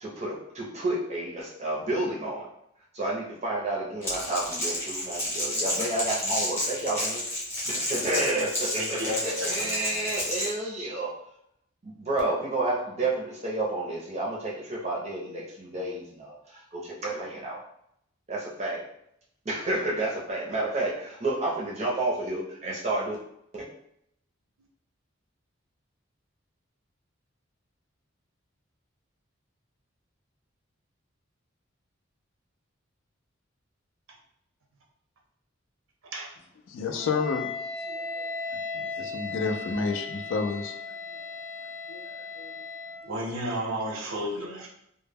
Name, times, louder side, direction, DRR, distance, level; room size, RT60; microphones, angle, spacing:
voice 1, 0.0-2.5 2.9-7.2 7.7-11.1 11.8-17.6 18.3-18.8 19.5-23.2, right 2 dB, 30° right, -3 dB, 0.5 m, -30 dB
Crackle, 4.0-10.5, left 1 dB, 15° left, 0.7 m, -31 dB
voice 2, 8.8-10.1 36.1-36.3 43.0-44.7, equal, 85° right, -1 dB, 0.7 m, -33 dB
voice 3, 36.7-37.5 37.8-38.3 38.7-40.7 41.3-41.4 41.9-42.5, left 4 dB, 70° left, 5 dB, 0.3 m, -31 dB
Wind instrument woodwind instrument, 37.0-43.1, left 4 dB, 85° left, 0.8 m, -36 dB
2.1 x 2.0 x 3.4 m, 0.75 s
head